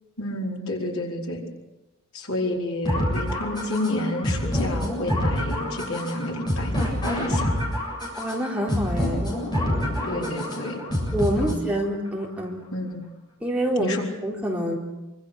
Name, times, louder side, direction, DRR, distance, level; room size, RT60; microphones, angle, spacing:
voice 1, 0.2-1.4 2.1-6.7 7.0-7.5 10.0-10.8 11.4-11.6 12.7-13.0 13.8-14.0, left 1 dB, 80° left, -1 dB, 5.0 m, -29 dB
sound 1, 2.8-11.8, left 1 dB, 20° left, 7.7 m, -27 dB
voice 2, 8.1-9.4 11.1-12.6 13.4-14.0 14.2-14.8, equal, 5° right, -3 dB, 4.0 m, -26 dB
26.0 x 25.0 x 6.6 m, 1.0 s
head